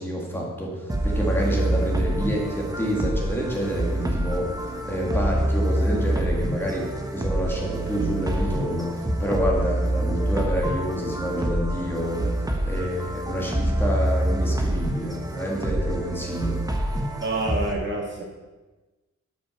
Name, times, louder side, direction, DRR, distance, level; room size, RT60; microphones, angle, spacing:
voice 1, 0.0-16.6, equal, 5° left, -3 dB, 2.1 m, -28 dB
sound 1, 0.9-17.7, right 1 dB, 10° right, 1.0 m, -26 dB
voice 2, 17.2-18.2, right 2 dB, 40° right, -1 dB, 1.8 m, -27 dB
12.0 x 6.3 x 5.8 m, 1.2 s
wide cardioid pair, 170°, 31 cm